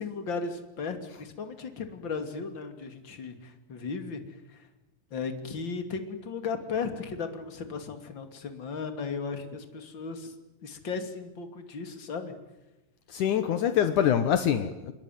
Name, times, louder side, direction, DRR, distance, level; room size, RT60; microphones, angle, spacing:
voice 1, 0.0-4.7 5.1-10.3 10.6-12.4, left 5 dB, 30° left, 2.6 m, -36 dB
voice 2, 13.1-14.9, left 9 dB, 75° left, 1.8 m, -25 dB
28.5 x 21.0 x 9.4 m
omnidirectional pair, 5.6 m